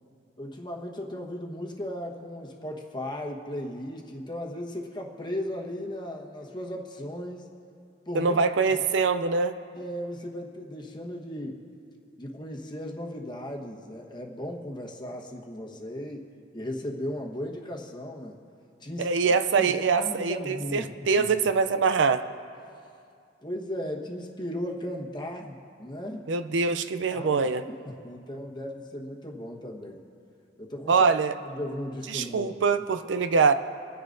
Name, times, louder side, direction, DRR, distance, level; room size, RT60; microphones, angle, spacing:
voice 1, 0.4-7.5 8.1-8.4 8.7-8.8 9.7-11.6 12.2-16.3 16.5-18.4 18.8-21.3 23.4-26.3 27.1-30.0 30.6-31.1 31.4-32.5, left 1 dB, 25° left, 0 dB, 1.3 m, -36 dB
voice 2, 8.1-9.5 19.0-22.2 26.3-27.6 30.9-31.3 32.1-33.5, right 5 dB, 70° right, 10 dB, 0.5 m, -24 dB
27.0 x 10.0 x 2.6 m, 2.4 s
head